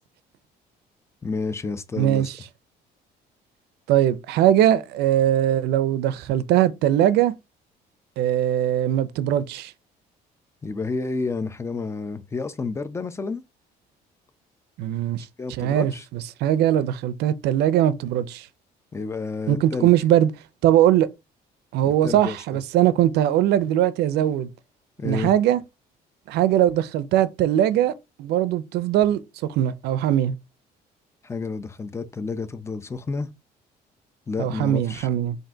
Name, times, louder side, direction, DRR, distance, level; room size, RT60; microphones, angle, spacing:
voice 1, 1.2-2.3 10.6-13.4 15.4-16.0 18.9-19.9 21.8-22.4 25.0-25.3 31.2-33.3 34.3-35.1, left 4 dB, 15° left, 0.5 m, -30 dB
voice 2, 1.9-2.4 3.9-7.3 8.2-9.7 14.8-18.5 19.5-20.3 20.6-21.1 21.7-24.5 25.0-25.6 26.3-27.9 28.2-29.2 29.5-30.3 34.4-35.4, right 11 dB, 75° right, 0.5 m, -21 dB
3.8 x 2.6 x 4.4 m
cardioid pair, 110°, 17 cm